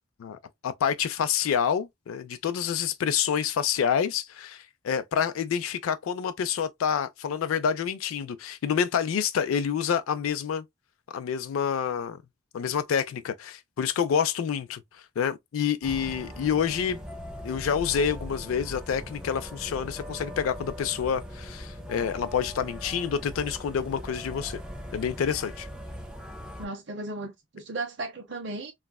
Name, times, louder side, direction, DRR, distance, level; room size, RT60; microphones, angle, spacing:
voice 1, 0.6-10.6 11.1-12.2 12.5-14.8 15.2-17.0 17.4-24.6 24.9-25.7, left 7 dB, 90° left, 0.4 m, -28 dB
sound 1, 15.8-26.7, equal, 5° right, 0.6 m, -40 dB
voice 2, 26.6-28.7, right 2 dB, 60° right, 0.7 m, -35 dB
3.1 x 2.4 x 2.2 m
head